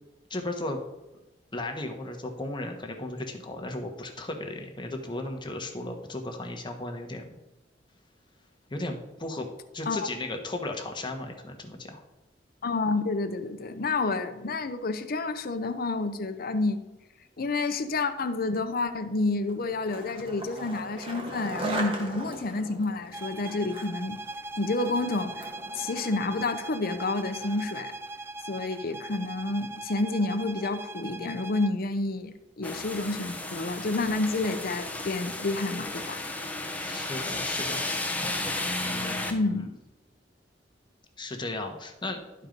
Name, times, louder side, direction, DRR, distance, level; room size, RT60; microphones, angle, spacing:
voice 1, 0.3-0.8 1.5-7.4 8.7-9.5 9.7-12.0 36.8-38.3 38.8-39.7 41.2-42.2, left 2 dB, 25° left, 3 dB, 1.2 m, -35 dB
voice 2, 12.6-16.8 17.4-24.2 24.6-27.9 28.5-36.2 39.3-39.7, left 3 dB, 55° left, 10 dB, 0.7 m, -29 dB
Skateboard, 19.5-27.8, right 1 dB, 30° right, 1.6 m, -39 dB
sound 1, 23.1-31.8, right 2 dB, 15° right, 0.3 m, -40 dB
sound 2, 32.6-39.3, left 2 dB, 10° left, 0.9 m, -33 dB
12.0 x 4.5 x 5.2 m, 0.97 s
head